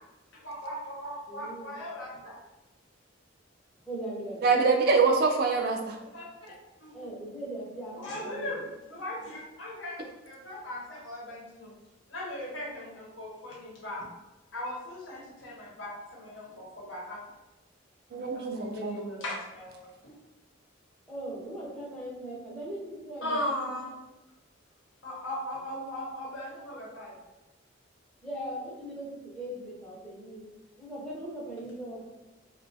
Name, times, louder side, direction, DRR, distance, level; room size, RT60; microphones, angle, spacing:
voice 1, 0.3-2.4 6.1-6.5 6.8-7.1 7.9-8.6 8.9-10.0 10.3-11.7 12.1-14.1 14.5-17.2 18.3-19.9 23.2-23.9 25.0-27.1, left 1 dB, 75° left, -4 dB, 0.8 m, -38 dB
voice 2, 1.3-1.8 2.1-2.2 3.9-4.5 6.9-8.6 16.5-16.6 21.1-23.4 23.7-23.8 28.2-30.5 30.8-32.0, right 1 dB, 5° left, -6 dB, 0.5 m, -39 dB
voice 3, 4.4-6.0 18.1-19.0, right 4 dB, 50° right, 3 dB, 0.3 m, -24 dB
2.3 x 2.2 x 2.6 m, 1.0 s
head